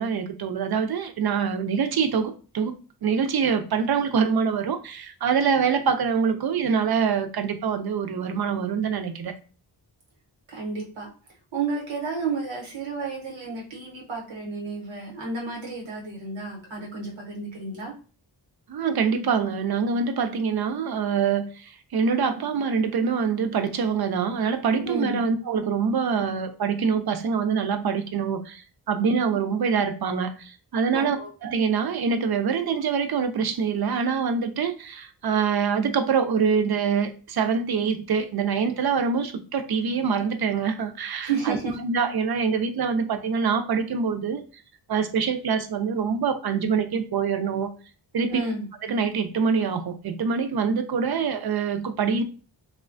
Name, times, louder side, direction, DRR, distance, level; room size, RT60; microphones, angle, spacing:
voice 1, 0.0-9.3 18.7-31.2 31.4-41.6 41.8-44.4 44.9-47.7 48.1-48.4 48.8-52.2, right 6 dB, 55° right, 0.5 m, -25 dB
voice 2, 10.5-11.1 11.5-17.9 24.8-25.2 30.9-31.3 41.2-41.7 48.3-48.7, right 4 dB, 80° right, 1.0 m, -31 dB
3.0 x 2.1 x 2.5 m
cardioid pair, 65°, 45 cm